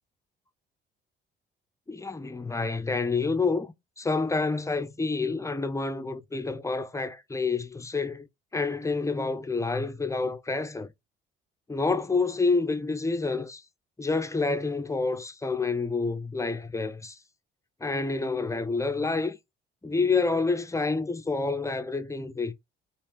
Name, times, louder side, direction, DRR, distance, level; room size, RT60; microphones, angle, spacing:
voice 1, 1.9-8.3 8.5-10.9 11.7-13.6 14.0-17.2 17.8-19.4 19.8-22.5, left 3 dB, 10° left, 0.5 m, -28 dB
3.2 x 2.5 x 3.2 m
figure-of-eight pair, 50°, 30 cm